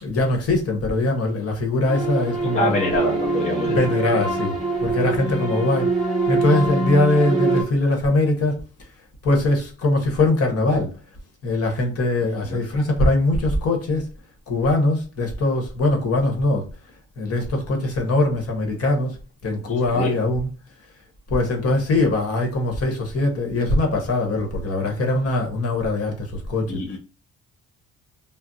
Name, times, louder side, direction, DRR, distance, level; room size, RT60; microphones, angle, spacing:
voice 1, 0.0-3.1 3.7-5.9 6.3-8.6 9.2-10.9 11.4-14.1 14.5-16.6 17.2-19.2 19.4-20.5 21.3-27.0, left 2 dB, 50° left, 1.0 m, -22 dB
sound 1, 1.9-7.6, right 3 dB, ahead, 1.0 m, -24 dB
voice 2, 2.5-3.8 12.4-12.6 19.7-20.1 26.7-27.0, left 2 dB, 25° left, 0.6 m, -26 dB
2.5 x 2.0 x 3.9 m
cardioid pair, 130°, 32 cm